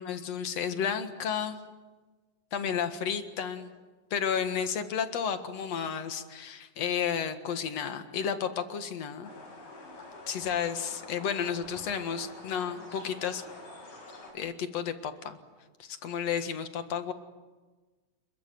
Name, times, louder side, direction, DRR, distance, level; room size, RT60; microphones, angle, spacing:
voice 1, 0.0-1.6 2.5-3.7 4.1-9.3 10.3-13.4 14.3-15.4 15.8-17.1, left 7 dB, 55° left, 9 dB, 2.5 m, -32 dB
sound 1, 9.2-14.3, left 2 dB, 80° left, 9.0 m, -47 dB
27.5 x 23.0 x 9.4 m, 1.3 s
omnidirectional pair, 4.0 m